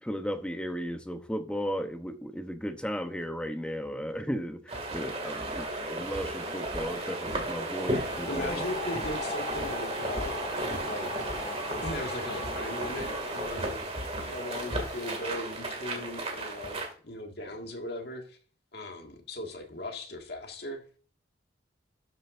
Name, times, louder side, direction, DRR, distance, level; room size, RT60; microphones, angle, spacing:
voice 1, 0.0-8.6, equal, 5° left, 0.8 m, -35 dB
sound 1, 4.7-16.9, right 1 dB, 35° right, 2.3 m, -34 dB
sound 2, 8.0-15.2, left 3 dB, 40° left, 1.8 m, -41 dB
voice 2, 8.3-10.4 10.9-11.2 11.8-13.9 14.2-18.4 18.7-20.8, left 1 dB, 60° left, 1.9 m, -38 dB
12.5 x 7.7 x 2.6 m
head